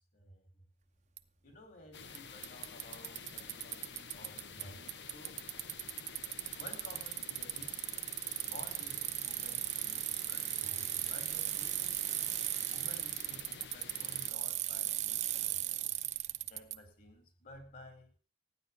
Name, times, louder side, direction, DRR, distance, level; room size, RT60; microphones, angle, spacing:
voice 1, 0.1-0.5 1.4-5.4 6.5-7.9 8.4-11.9 12.7-15.8 16.4-18.1, left 1 dB, 50° left, 7 dB, 4.6 m, -54 dB
Bicycle, 1.2-1.3 2.2-2.3 2.4-4.6 4.9-16.8, right 13 dB, 45° right, 0.8 m, -37 dB
sound 1, 1.9-14.3, left 6 dB, 80° left, 1.2 m, -50 dB
15.0 x 10.0 x 6.1 m, 0.40 s
head